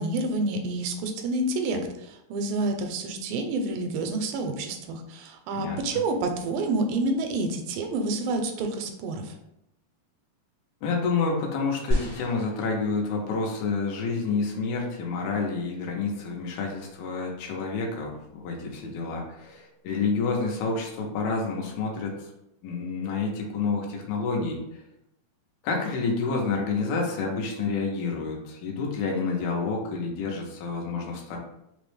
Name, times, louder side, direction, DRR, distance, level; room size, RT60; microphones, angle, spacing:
voice 1, 0.0-9.3, right 2 dB, 85° right, 5 dB, 2.3 m, -28 dB
voice 2, 10.8-22.3 22.6-24.6 25.6-31.4, left 4 dB, 90° left, 0 dB, 2.5 m, -29 dB
sound 1, 11.9-13.4 14.2-14.3, equal, 60° left, 0.9 m, -31 dB
5.6 x 2.1 x 3.1 m, 0.83 s
omnidirectional pair, 4.1 m